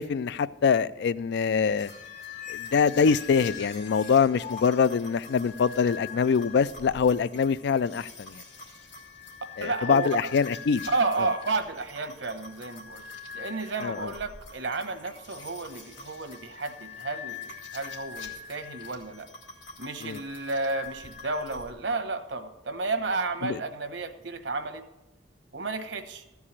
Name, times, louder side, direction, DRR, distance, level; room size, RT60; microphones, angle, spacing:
voice 1, 0.0-1.9 2.5-8.4 9.6-10.8 13.8-14.1 20.0-20.2 23.4-23.6, left 6 dB, 65° left, 0.3 m, -24 dB
sound 1, 1.8-21.7, left 6 dB, 80° left, 2.3 m, -43 dB
voice 2, 9.6-10.1 10.9-13.0 13.3-19.3 19.8-24.8 25.5-26.2, right 3 dB, 75° right, 1.0 m, -32 dB
14.0 x 4.7 x 8.6 m
head